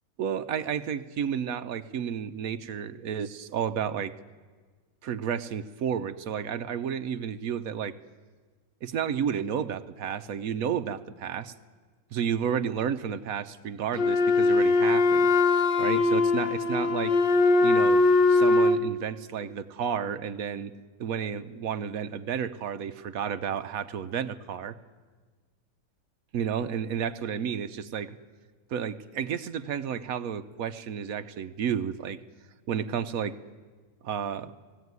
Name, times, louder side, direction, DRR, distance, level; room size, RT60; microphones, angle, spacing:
voice 1, 0.2-4.1 5.0-7.9 8.8-11.5 12.1-15.3 15.8-17.2 17.6-18.0 18.3-20.7 21.0-24.8 26.3-28.2 28.7-32.2 32.7-33.4 34.0-34.5, right 8 dB, 60° right, 10 dB, 1.1 m, -31 dB
Wind instrument woodwind instrument, 13.9-18.9, left 3 dB, 90° left, 1.8 m, -21 dB
19.0 x 16.5 x 9.5 m, 1.5 s
omnidirectional pair, 1.9 m